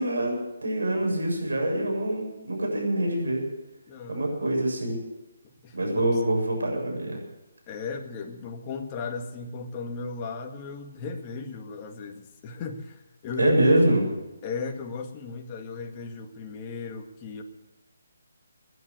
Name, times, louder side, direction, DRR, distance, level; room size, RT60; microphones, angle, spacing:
voice 1, 0.0-3.4 4.1-5.0 5.7-7.2 13.4-14.0, right 1 dB, 80° right, 1 dB, 7.5 m, -25 dB
voice 2, 3.9-4.5 5.6-6.0 7.7-12.9 13.2-13.8 14.4-17.4, left 5 dB, 25° left, 3 dB, 2.0 m, -35 dB
19.0 x 11.0 x 6.7 m, 1.0 s
figure-of-eight pair, 150°, 0 cm